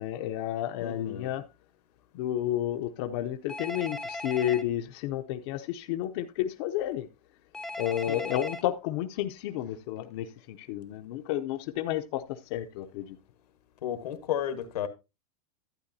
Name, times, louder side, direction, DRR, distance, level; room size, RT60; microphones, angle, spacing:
voice 1, 0.0-1.4 2.1-7.1 7.8-13.2, left 12 dB, 45° left, 0.6 m, -31 dB
voice 2, 0.8-1.3 8.1-8.4 13.8-14.9, left 10 dB, 90° left, 1.4 m, -33 dB
Telephone, 3.5-4.6 7.5-8.6, left 2 dB, 5° left, 0.5 m, -37 dB
11.5 x 8.9 x 2.7 m
supercardioid pair, 155°, 20 cm